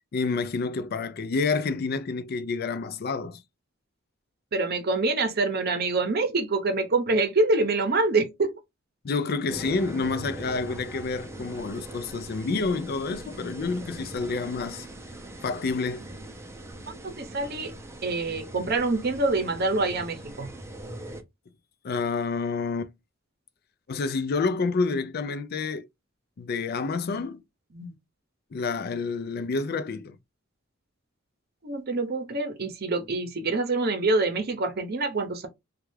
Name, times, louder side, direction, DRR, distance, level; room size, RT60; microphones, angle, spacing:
voice 1, 0.1-3.4 9.0-14.9 15.4-16.1 21.8-22.9 23.9-25.9 26.4-27.4 28.5-30.2, left 4 dB, 50° left, 0.4 m, -28 dB
voice 2, 4.5-8.5 16.9-17.7 18.0-20.5 27.7-27.9 31.6-35.5, right 3 dB, 50° right, 0.7 m, -26 dB
sound 1, 9.5-21.2, right 1 dB, 15° right, 0.5 m, -41 dB
3.2 x 2.3 x 3.1 m
head